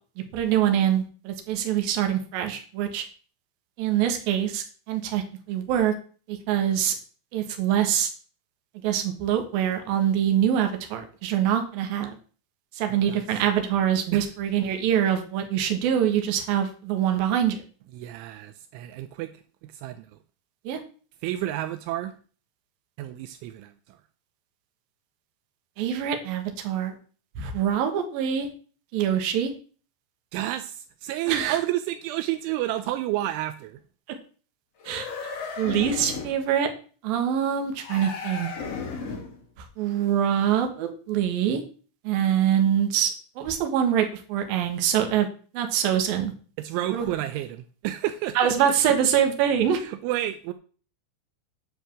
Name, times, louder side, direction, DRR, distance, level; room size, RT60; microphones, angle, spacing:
voice 1, 0.2-3.0 3.8-5.9 6.3-6.9 7.3-8.1 8.8-12.2 12.7-17.6 20.6-20.8 25.8-27.0 27.4-28.5 28.9-29.5 31.3-31.6 34.8-35.1 35.6-36.7 37.0-38.5 39.6-41.6 42.0-45.3 45.5-46.3 46.9-47.1 48.4-49.8, right 9 dB, 60° right, 5 dB, 2.9 m, -24 dB
voice 2, 17.9-19.3 19.6-20.2 21.2-22.1 23.0-24.0 30.3-33.8 46.6-48.7 49.7-50.5, right 14 dB, 85° right, 10 dB, 3.0 m, -30 dB
Cute Machine Start Stop, 34.8-36.4 37.8-39.4, left 5 dB, 45° left, 2.5 m, -34 dB
10.0 x 5.4 x 7.4 m, 0.40 s
omnidirectional pair, 5.5 m